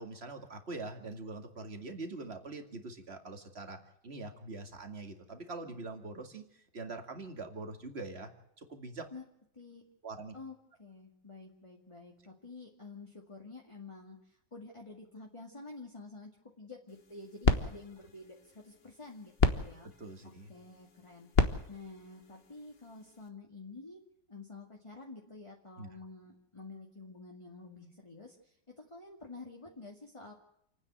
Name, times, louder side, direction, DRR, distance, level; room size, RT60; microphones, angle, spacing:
voice 1, 0.0-3.8 4.0-8.3 8.6-9.1 10.0-10.3 19.8-20.5 25.8-25.9, right 3 dB, 35° right, 6 dB, 2.4 m, -43 dB
voice 2, 10.3-16.3 16.6-19.9 20.2-24.0 24.3-30.3, left 3 dB, 15° left, 0 dB, 2.1 m, -49 dB
sound 1, 16.9-23.3, left 4 dB, 35° left, 1.4 m, -34 dB
28.5 x 9.8 x 9.4 m, 0.76 s
omnidirectional pair, 2.0 m